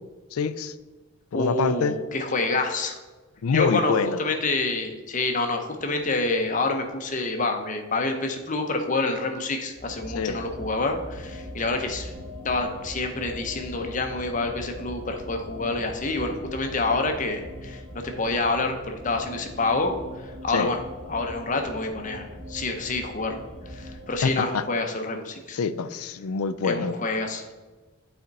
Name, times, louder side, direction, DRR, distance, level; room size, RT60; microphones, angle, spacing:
voice 1, 0.3-0.7 1.3-2.0 3.4-4.2 10.1-10.4 20.5-20.7 24.2-24.6 25.5-27.0, left 5 dB, 80° left, 13 dB, 0.4 m, -25 dB
voice 2, 1.3-3.0 3.5-3.9 4.2-12.1 12.4-20.0 20.2-20.8 21.1-23.4 23.7-25.6 26.6-27.5, left 3 dB, 35° left, 4 dB, 0.7 m, -27 dB
sound 1, 9.8-24.3, left 1 dB, 30° right, 1.8 m, -40 dB
8.7 x 4.3 x 4.0 m, 1.2 s
head